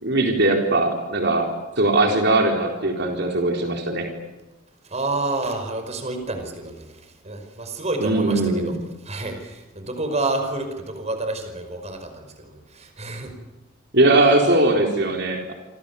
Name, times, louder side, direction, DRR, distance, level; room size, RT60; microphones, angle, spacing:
voice 1, 0.0-1.5 1.8-4.1 8.0-8.8 13.9-15.5, right 2 dB, 60° right, 2 dB, 4.2 m, -20 dB
voice 2, 4.8-6.9 7.2-8.8 9.0-13.3, right 2 dB, 35° right, 7 dB, 5.2 m, -29 dB
28.0 x 27.0 x 7.1 m, 1.1 s
head